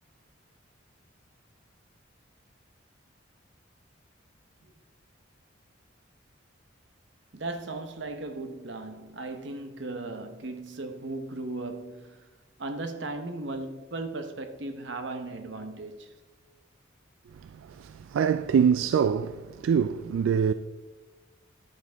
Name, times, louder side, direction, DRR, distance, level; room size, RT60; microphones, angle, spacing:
voice 1, 7.3-12.3 12.6-16.1, right 2 dB, 65° right, 0.9 m, -37 dB
voice 2, 17.3-20.5, right 7 dB, 80° right, 0.3 m, -25 dB
11.0 x 7.8 x 3.4 m
head